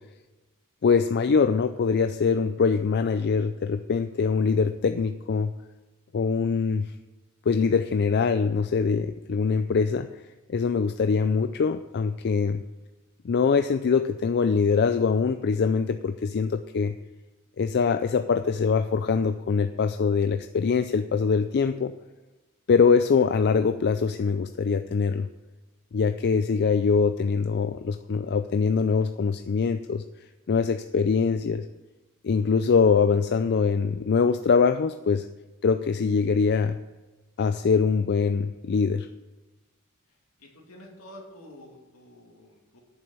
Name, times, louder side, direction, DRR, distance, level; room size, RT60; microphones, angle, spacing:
voice 1, 0.8-5.5 6.1-6.9 7.5-10.1 10.5-12.6 13.2-17.0 17.6-21.9 22.7-25.3 25.9-30.0 30.5-31.6 32.2-35.3 35.6-36.8 37.4-39.1, left 5 dB, 50° left, 9 dB, 0.4 m, -23 dB
voice 2, 40.4-42.8, left 1 dB, 75° left, -1 dB, 2.8 m, -48 dB
8.7 x 7.0 x 8.6 m, 1.1 s
head